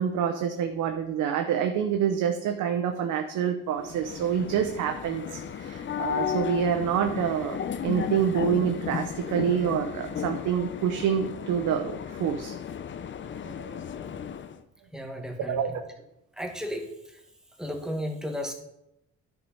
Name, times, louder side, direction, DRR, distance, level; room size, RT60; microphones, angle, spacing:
voice 1, 0.0-7.6 7.8-12.6 13.5-13.8 15.5-15.7, right 8 dB, 85° right, 5 dB, 0.8 m, -27 dB
sound 1, 3.8-14.6, left 8 dB, 40° left, 0.6 m, -34 dB
voice 2, 14.9-15.8 16.4-17.2 17.6-18.5, equal, ahead, 2 dB, 1.6 m, -34 dB
10.0 x 4.7 x 5.4 m, 0.84 s
cardioid pair, 90°, 30 cm